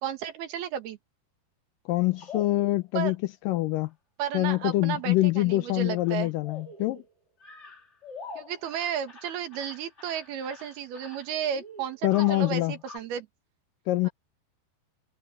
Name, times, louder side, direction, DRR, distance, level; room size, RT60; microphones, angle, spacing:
voice 1, 0.0-1.0 2.9-3.1 4.2-6.3 8.4-13.3 14.0-14.1, right 9 dB, 75° right, 3.8 m, -33 dB
voice 2, 1.9-3.2 3.5-3.9 4.3-7.0 12.0-12.7 13.9-14.1, left 18 dB, 80° left, 2.0 m, -25 dB
sound 1, 1.9-2.8 3.7-3.9 4.4-5.0 5.5-5.6 6.0-6.1 6.4-7.1 7.4-13.0, left 3 dB, 25° left, 1.7 m, -45 dB
omnidirectional pair, 4.5 m